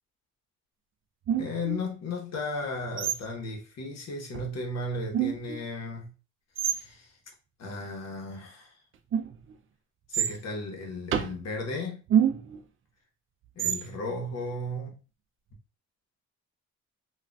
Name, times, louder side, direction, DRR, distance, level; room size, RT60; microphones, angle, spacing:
sound 1, 1.3-1.8 3.0-3.4 4.3-4.5 5.1-5.6 6.6-6.8 9.1-9.5 10.1-10.4 11.1-11.4 12.1-12.6 13.6-13.9, right 9 dB, 45° right, 0.4 m, -27 dB
voice 1, 1.4-6.1 6.7-7.1 7.6-8.7 10.1-12.0 13.6-15.0, left 2 dB, 60° left, 1.0 m, -35 dB
3.7 x 2.4 x 2.2 m
cardioid pair, 90°, 30 cm